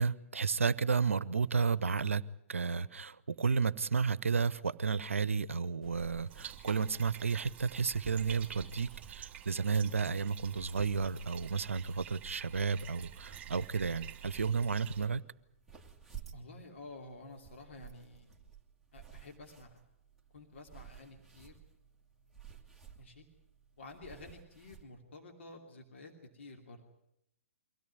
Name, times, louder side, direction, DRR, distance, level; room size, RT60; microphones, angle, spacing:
voice 1, 0.0-2.2 2.5-15.2, right 5 dB, 70° right, 0.8 m, -32 dB
sound 1, 5.8-24.8, right 7 dB, ahead, 2.1 m, -55 dB
Bathtub (filling or washing), 6.3-15.1, right 10 dB, 20° right, 2.4 m, -49 dB
voice 2, 16.3-18.3 18.9-19.8 20.3-21.5 23.0-23.3 23.8-26.8, left 2 dB, 60° left, 2.9 m, -51 dB
24.0 x 16.5 x 9.5 m
figure-of-eight pair, 120°, 7 cm